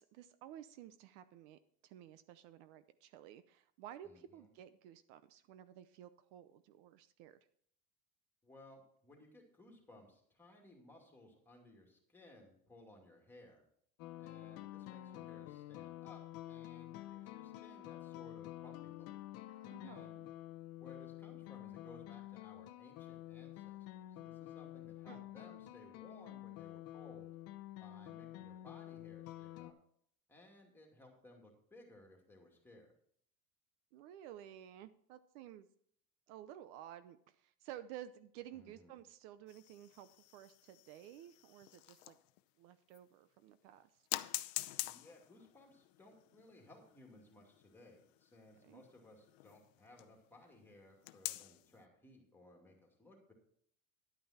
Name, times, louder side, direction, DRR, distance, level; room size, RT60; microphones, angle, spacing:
voice 1, 0.0-7.4 19.5-20.3 25.1-25.2 33.9-35.7 36.3-42.2 42.6-43.9 48.6-48.8, right 11 dB, 65° right, 12 dB, 0.8 m, -54 dB
voice 2, 4.0-4.5 8.4-13.6 14.2-16.2 16.5-19.1 19.8-20.1 20.8-27.3 27.8-29.7 30.3-32.9 38.5-39.0 44.8-53.3, left 1 dB, 5° left, 1 dB, 2.4 m, -60 dB
sound 1, 14.0-29.7, left 14 dB, 40° left, 0.7 m, -49 dB
sound 2, 39.5-42.4 42.9-43.0 44.1-50.1 51.0-51.7, left 18 dB, 80° left, 0.7 m, -46 dB
11.0 x 9.1 x 4.3 m, 0.65 s
cardioid pair, 165°, 37 cm